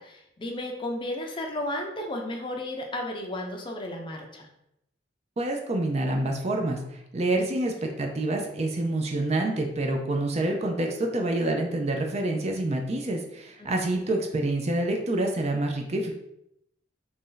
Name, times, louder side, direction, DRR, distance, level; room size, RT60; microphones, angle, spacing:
voice 1, 0.0-4.5 7.7-7.8 13.6-14.0, left 1 dB, 25° left, 2 dB, 0.5 m, -34 dB
voice 2, 5.4-16.1, right 2 dB, 35° right, 2 dB, 0.5 m, -27 dB
3.0 x 2.7 x 3.8 m, 0.81 s
head